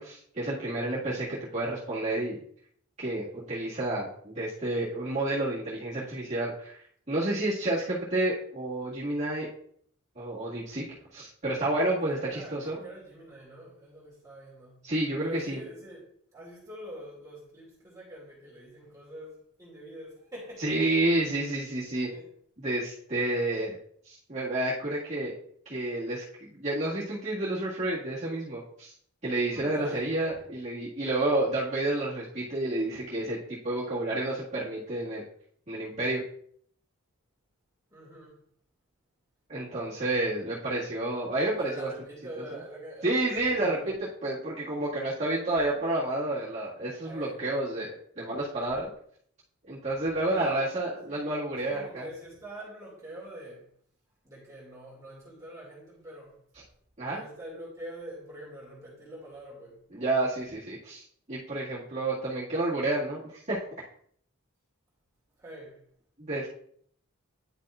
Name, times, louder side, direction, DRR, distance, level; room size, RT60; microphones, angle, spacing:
voice 1, 0.0-2.4 3.0-9.5 10.2-10.9 11.1-12.8 14.8-15.6 20.6-22.1 22.6-23.8 24.0-25.3 25.7-26.2 26.5-28.9 29.2-35.2 35.7-36.2 39.5-41.9 42.4-42.6 43.0-47.9 48.2-48.9 49.7-52.1 57.0-57.2 59.9-63.6 66.2-66.5, right 2 dB, 30° right, -9 dB, 1.9 m, -30 dB
voice 2, 12.1-14.8 15.2-16.0 16.3-20.9 22.0-22.3 29.5-30.3 37.9-38.4 41.6-43.9 47.0-47.4 50.3-50.7 51.1-51.3 51.6-53.6 54.2-56.4 57.0-59.8 65.4-65.8, right 1 dB, 15° right, -6 dB, 2.3 m, -44 dB
10.0 x 5.8 x 2.4 m, 0.63 s
head